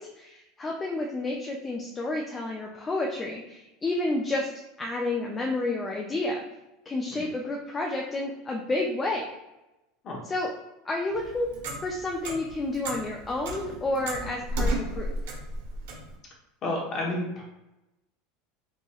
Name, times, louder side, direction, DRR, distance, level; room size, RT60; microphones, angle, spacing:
voice 1, 0.0-4.5 4.8-6.4 6.9-9.2 10.2-10.5 10.8-11.5 11.8-15.1, left 2 dB, 15° left, 0 dB, 0.3 m, -30 dB
Clock, 11.1-16.1, right 1 dB, 90° right, 1.0 m, -33 dB
voice 2, 16.6-17.4, left 1 dB, 30° left, -2 dB, 0.9 m, -31 dB
4.2 x 2.9 x 2.3 m, 0.97 s
supercardioid pair, 170°, 0 cm